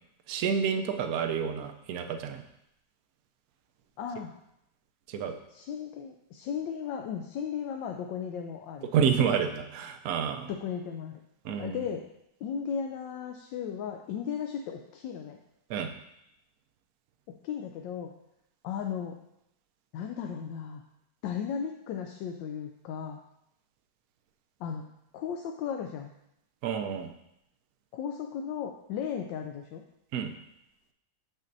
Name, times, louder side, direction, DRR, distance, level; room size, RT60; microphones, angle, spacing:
voice 1, 0.3-2.4 5.1-5.4 8.9-10.5 11.4-11.8 15.7-15.9 26.6-27.1 30.1-30.3, right 7 dB, 75° right, 6 dB, 0.8 m, -29 dB
voice 2, 4.0-4.3 5.5-8.9 10.5-11.2 11.6-12.1 12.4-15.4 17.4-18.1 18.6-19.2 19.9-20.8 21.2-23.2 24.6-24.9 25.1-26.1 27.9-29.8, left 7 dB, 80° left, 3 dB, 1.2 m, -35 dB
7.2 x 6.4 x 2.6 m, 0.81 s
omnidirectional pair, 2.1 m